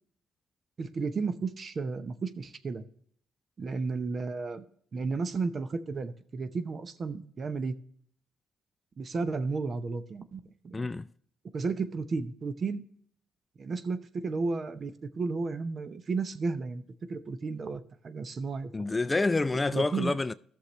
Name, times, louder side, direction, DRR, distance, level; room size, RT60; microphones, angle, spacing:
voice 1, 0.8-2.8 3.6-4.6 4.9-7.7 9.0-10.9 11.5-12.8 13.6-16.8 17.1-18.7 19.5-20.2, right 4 dB, 45° right, 0.8 m, -33 dB
voice 2, 10.7-11.1 18.7-20.3, left 3 dB, 20° left, 0.3 m, -28 dB
14.5 x 6.5 x 3.1 m
cardioid pair, 90°, 0 cm